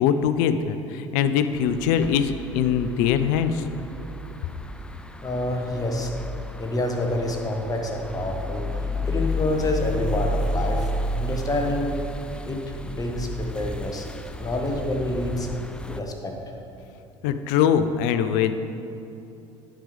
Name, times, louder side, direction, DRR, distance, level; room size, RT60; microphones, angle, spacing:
voice 1, 0.0-3.7 17.2-18.5, left 8 dB, 60° left, 11 dB, 0.5 m, -22 dB
sound 1, 1.6-16.0, left 1 dB, 5° left, 0.4 m, -32 dB
voice 2, 5.2-6.1 6.6-8.6 9.0-12.0 12.4-14.1 14.4-15.5 15.8-16.3, left 1 dB, 20° left, 2 dB, 1.2 m, -27 dB
8.9 x 5.0 x 5.0 m, 2.9 s
figure-of-eight pair, 65°, 16 cm